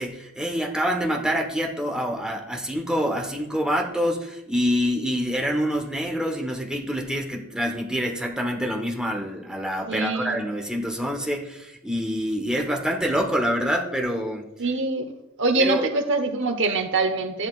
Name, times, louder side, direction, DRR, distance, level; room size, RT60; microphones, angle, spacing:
voice 1, 0.0-14.5 15.6-15.8, equal, 5° right, 1 dB, 1.1 m, -26 dB
voice 2, 9.9-10.4 14.6-15.1 15.4-17.5, right 3 dB, 60° right, 7 dB, 1.0 m, -24 dB
13.5 x 11.0 x 2.4 m, 0.91 s
head